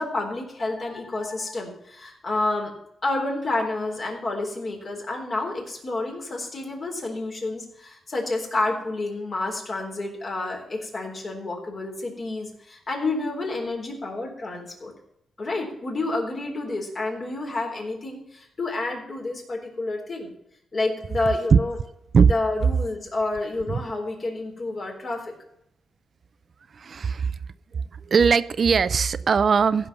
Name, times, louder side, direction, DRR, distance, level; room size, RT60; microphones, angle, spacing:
voice 1, 0.0-2.7 3.0-14.9 15.4-20.3 20.7-21.8 22.3-25.3, left 2 dB, 45° left, 1 dB, 3.8 m, -29 dB
voice 2, 26.7-27.4 27.7-29.9, right 6 dB, 50° right, 15 dB, 0.5 m, -20 dB
15.5 x 5.7 x 7.0 m, 0.77 s
cardioid pair, 100°, 0 cm